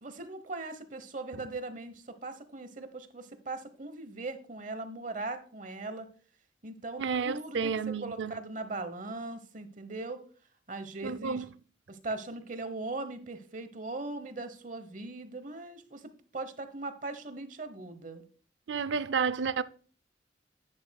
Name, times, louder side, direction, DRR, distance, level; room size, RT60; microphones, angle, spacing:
voice 1, 0.0-6.1 6.6-10.2 10.7-11.4 11.9-18.2, right 2 dB, 45° right, 1.1 m, -39 dB
voice 2, 7.0-8.3 11.0-11.5 18.7-19.6, right 5 dB, 85° right, 0.5 m, -31 dB
10.5 x 8.6 x 2.3 m
head